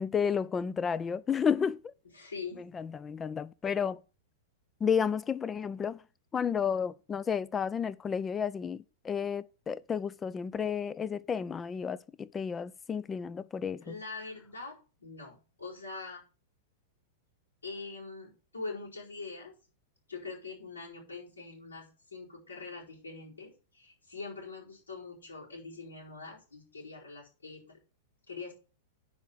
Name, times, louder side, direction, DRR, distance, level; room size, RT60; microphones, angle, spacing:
voice 1, 0.0-1.9 2.7-4.0 4.8-6.0 6.3-14.0, left 7 dB, 20° left, 0.5 m, -32 dB
voice 2, 2.1-2.6 13.8-16.2 17.6-19.5 20.1-27.8 28.3-28.5, left 4 dB, 75° left, 4.5 m, -43 dB
10.5 x 4.7 x 6.5 m
figure-of-eight pair, 100°, 0 cm